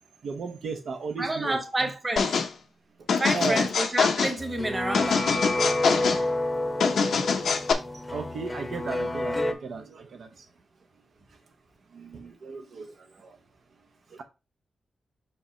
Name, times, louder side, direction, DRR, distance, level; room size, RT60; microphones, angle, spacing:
voice 1, 0.2-1.9 3.3-3.7 8.1-10.3 11.9-13.4 14.1-14.2, right 4 dB, 65° right, 0.9 m, -35 dB
voice 2, 1.2-2.4 3.2-5.2, right 1 dB, 20° right, 1.2 m, -29 dB
sound 1, 2.2-2.5 3.1-4.4 4.9-6.2 6.8-7.7, left 5 dB, 75° left, 1.0 m, -24 dB
sound 2, 4.4-9.5, left 1 dB, 15° left, 0.9 m, -29 dB
5.7 x 5.3 x 3.2 m
wide cardioid pair, 150°, 0 cm